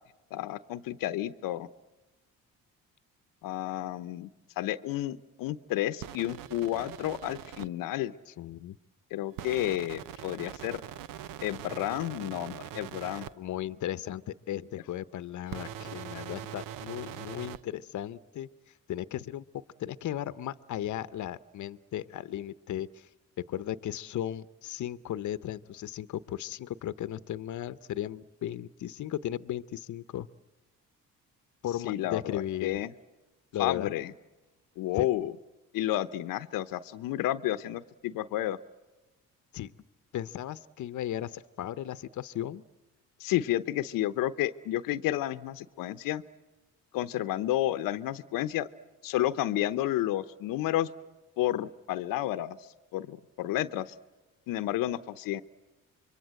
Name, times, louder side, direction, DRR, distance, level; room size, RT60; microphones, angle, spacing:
voice 1, 0.3-1.7 3.4-4.3 4.6-8.1 9.1-10.8 11.4-13.3 31.8-32.9 33.6-34.1 34.8-35.3 35.7-38.6 43.2-46.2 46.9-48.7 49.0-50.9 51.4-52.6 52.9-53.9 54.5-55.4, left 14 dB, 90° left, 11 dB, 0.9 m, -31 dB
sound 1, 6.0-7.7 9.4-13.3 15.5-17.6, right 11 dB, 85° right, 0.8 m, -42 dB
voice 2, 8.3-8.8 13.4-18.5 18.9-19.4 19.8-23.1 23.5-30.3 31.6-32.8 33.5-33.9 34.9-35.1 39.5-39.7 40.1-42.6, left 12 dB, 60° left, 15 dB, 0.8 m, -36 dB
26.5 x 23.0 x 7.7 m, 1.1 s
cardioid pair, 90°, 33 cm